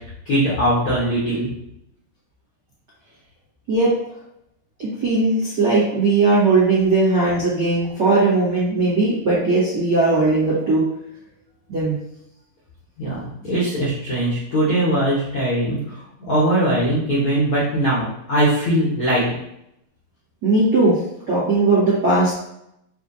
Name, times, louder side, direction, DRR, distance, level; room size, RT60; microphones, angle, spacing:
voice 1, 0.2-1.5 13.0-16.0 16.3-19.2, right 1 dB, 70° left, -9 dB, 1.2 m, -20 dB
voice 2, 4.8-10.8 11.7-11.9 20.4-21.0 21.3-22.4, right 3 dB, 65° right, -9 dB, 1.0 m, -18 dB
7.0 x 2.5 x 2.6 m, 0.78 s
omnidirectional pair, 4.1 m